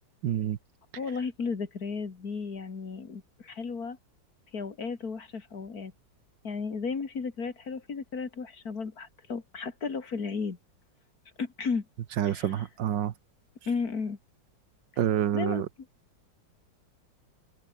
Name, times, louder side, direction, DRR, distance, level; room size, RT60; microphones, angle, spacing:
voice 1, 0.2-0.6 12.2-13.1 15.0-15.6, right 10 dB, 75° right, 1.7 m, -27 dB
voice 2, 1.0-4.0 4.5-5.9 6.4-10.6 11.4-11.9 12.2-12.7 13.7-14.2 14.9-15.0 15.3-15.9, left 5 dB, 50° left, 2.7 m, -34 dB
omnidirectional pair, 2.0 m